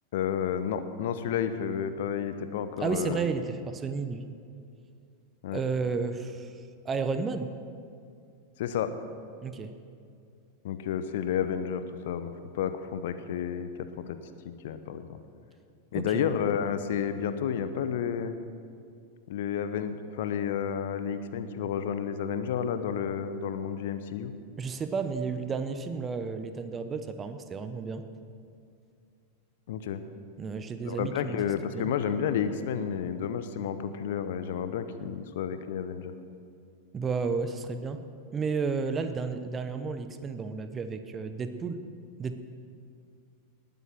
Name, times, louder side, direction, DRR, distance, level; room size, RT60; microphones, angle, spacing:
voice 1, 0.1-3.2 5.4-5.6 8.6-8.9 10.6-13.9 14.6-15.1 15.9-18.4 19.3-24.3 29.7-30.0 30.8-36.1, left 8 dB, 55° left, 11 dB, 0.8 m, -31 dB
voice 2, 2.8-4.2 5.5-6.5 6.8-7.5 9.4-9.7 15.9-16.3 24.6-28.0 30.4-31.9 36.9-38.0 38.3-41.8 42.2-42.4, right 4 dB, 20° right, 9 dB, 0.9 m, -32 dB
19.5 x 9.2 x 6.1 m, 2.4 s
figure-of-eight pair, 90°, 0 cm